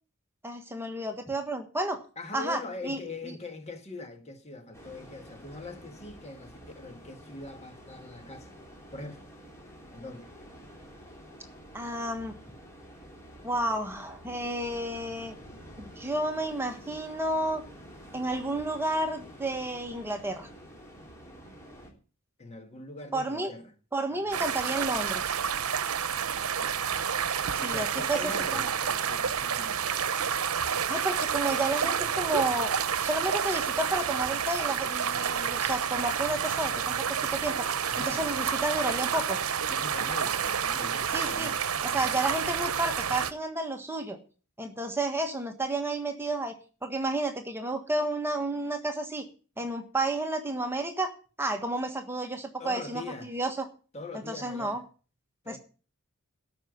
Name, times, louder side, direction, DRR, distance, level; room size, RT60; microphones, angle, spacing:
voice 1, 0.4-2.0 2.3-3.0 11.7-12.3 13.4-15.4 15.8-17.6 18.1-20.5 23.1-23.5 23.9-25.3 27.5-28.2 28.5-28.7 30.9-32.7 33.0-37.7 38.0-39.4 41.1-41.5 41.8-44.2 44.6-46.6 46.8-49.2 49.6-53.0 53.3-53.7 54.3-54.8 55.5-55.6, right 2 dB, 10° right, 1.4 m, -31 dB
voice 2, 2.2-8.5 8.9-9.3 9.9-10.3 22.4-23.7 24.1-24.4 26.6-29.8 37.8-38.3 39.7-41.6 52.6-53.3 53.9-54.8 55.4-55.6, left 2 dB, 30° left, 1.5 m, -42 dB
sound 1, 4.7-21.9, equal, 15° left, 3.7 m, -49 dB
sound 2, 24.3-43.3, right 7 dB, 80° right, 0.8 m, -29 dB
13.0 x 5.7 x 9.3 m
head